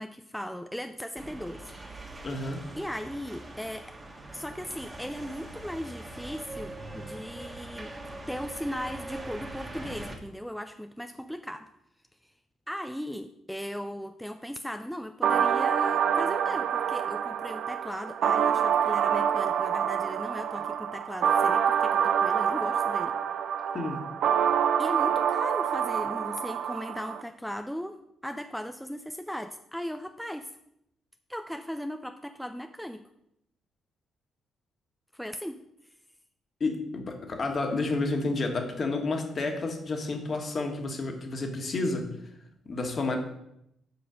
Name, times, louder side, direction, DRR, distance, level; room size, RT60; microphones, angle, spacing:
voice 1, 0.0-1.7 2.8-3.9 4.3-7.9 8.3-11.7 12.2-12.3 12.7-23.2 24.8-30.5 31.3-33.0 35.1-35.6, equal, ahead, 7 dB, 0.4 m, -37 dB
sound 1, 1.2-10.2, right 1 dB, 20° right, 1.6 m, -42 dB
voice 2, 2.2-2.6 23.7-24.0 36.6-42.1 42.6-43.2, left 3 dB, 40° left, 4 dB, 1.5 m, -30 dB
sound 2, 15.2-27.2, right 8 dB, 75° right, 0.4 m, -26 dB
7.0 x 5.4 x 5.0 m, 0.79 s
cardioid pair, 90°, 0 cm